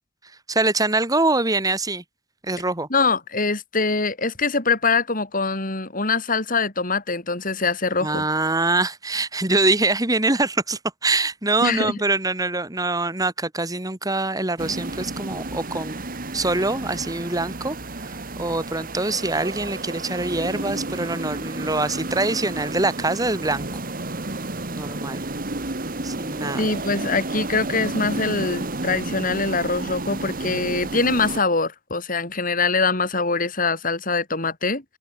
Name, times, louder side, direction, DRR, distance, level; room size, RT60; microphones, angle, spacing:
voice 1, 0.5-2.0 2.4-2.9 8.0-16.0 16.3-23.7 24.7-25.2 26.0-26.7, right 2 dB, 20° right, 2.6 m, -24 dB
voice 2, 2.9-8.2 11.6-12.0 26.6-34.8, left 4 dB, 50° left, 5.0 m, -23 dB
sound 1, 14.6-31.4, right 2 dB, 50° right, 2.5 m, -31 dB
open air
head